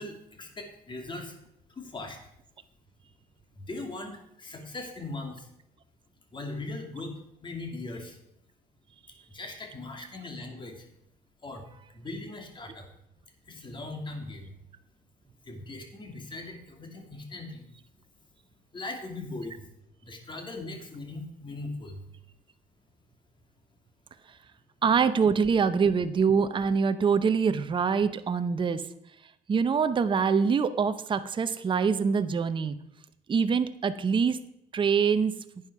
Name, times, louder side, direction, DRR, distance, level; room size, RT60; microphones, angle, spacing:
voice 1, 0.0-1.3 1.8-2.2 3.5-4.1 4.4-5.5 6.3-7.1 7.4-8.2 9.3-10.9 11.4-11.6 11.9-12.9 13.5-14.5 15.4-17.7 18.7-19.7 20.0-22.0, left 2 dB, 30° left, 4 dB, 2.5 m, -39 dB
voice 2, 24.8-28.8 29.5-32.8 33.3-34.4 34.7-35.3, right 6 dB, 30° right, 11 dB, 0.7 m, -24 dB
11.0 x 9.3 x 4.7 m, 0.78 s
cardioid pair, 110°, 17 cm